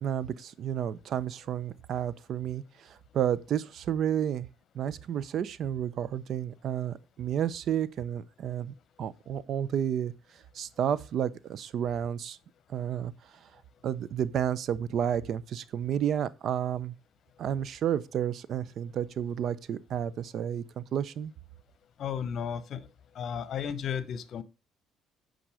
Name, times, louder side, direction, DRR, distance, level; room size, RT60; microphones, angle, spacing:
voice 1, 0.0-4.5 4.7-10.1 10.5-12.4 12.7-13.1 13.8-16.9 17.4-21.3, right 9 dB, 60° right, 0.6 m, -31 dB
voice 2, 22.0-22.9 23.1-24.4, left 8 dB, 55° left, 0.9 m, -34 dB
9.0 x 5.3 x 4.8 m
cardioid pair, 100°, 0 cm